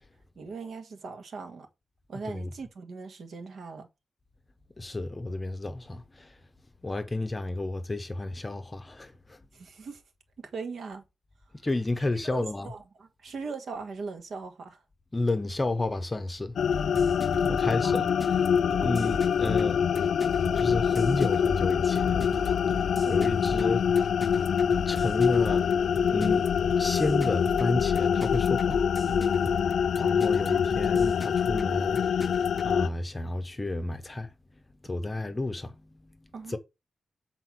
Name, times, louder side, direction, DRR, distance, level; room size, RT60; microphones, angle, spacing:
voice 1, 0.3-1.7 2.1-3.9 9.5-10.0 10.4-11.0 12.1-14.8 17.8-18.1 18.8-19.3 22.8-23.5 30.5-30.6 36.3-36.6, right 4 dB, 55° right, 1.6 m, -40 dB
voice 2, 4.8-6.3 6.8-9.4 11.6-12.7 15.1-16.5 17.5-18.1 18.8-19.8 20.5-22.3 23.1-23.8 24.9-25.7 26.1-26.5 26.8-28.8 30.0-32.3 32.6-34.3 34.8-35.7 36.5-36.6, left 2 dB, 15° left, 0.9 m, -31 dB
sound 1, 16.6-32.9, left 7 dB, 70° left, 0.4 m, -25 dB
sound 2, 16.7-32.7, equal, 10° right, 0.7 m, -40 dB
7.8 x 4.4 x 6.1 m
wide cardioid pair, 175°, 0 cm